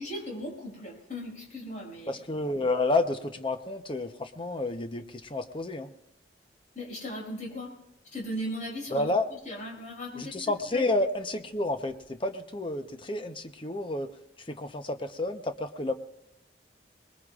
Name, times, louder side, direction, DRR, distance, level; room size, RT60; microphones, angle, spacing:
voice 1, 0.0-2.1 6.7-7.7 8.1-9.1 9.4-10.3 10.7-10.9, equal, 45° left, -3 dB, 6.1 m, -37 dB
voice 2, 2.1-5.9 8.9-9.3 10.1-14.1 14.5-15.9, left 2 dB, 30° left, 7 dB, 0.8 m, -30 dB
24.5 x 20.5 x 2.5 m, 0.83 s
head